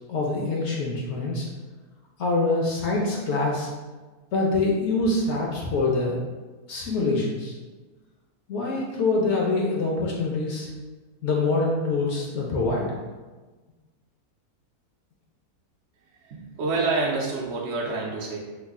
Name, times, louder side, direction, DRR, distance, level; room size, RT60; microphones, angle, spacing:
voice 1, 0.1-1.5 2.2-3.7 4.3-6.2 6.7-7.6 8.5-10.7 11.2-12.8, left 3 dB, 65° left, -2 dB, 0.7 m, -25 dB
voice 2, 16.2-18.4, right 3 dB, 65° right, -3 dB, 0.7 m, -27 dB
3.0 x 2.3 x 3.5 m, 1.3 s
omnidirectional pair, 1.6 m